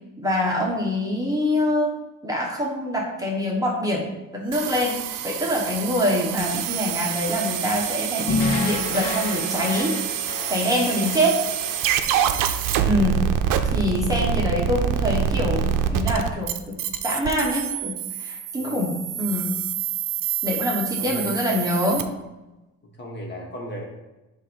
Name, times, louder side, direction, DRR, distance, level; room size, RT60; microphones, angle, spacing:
voice 1, 0.2-1.9 2.2-4.1 4.3-5.0 5.2-10.0 10.5-11.4 12.9-13.2 13.7-16.5 17.0-19.6 20.4-22.1, left 1 dB, 10° right, -3 dB, 1.0 m, -24 dB
sound 1, 4.5-22.0, right 9 dB, 75° right, 0.6 m, -26 dB
sound 2, 8.3-12.6, left 3 dB, 85° left, 1.0 m, -29 dB
voice 2, 21.0-21.5 23.0-23.9, equal, 35° left, -1 dB, 1.5 m, -36 dB
7.3 x 2.6 x 5.1 m, 1.0 s
cardioid pair, 120°, 32 cm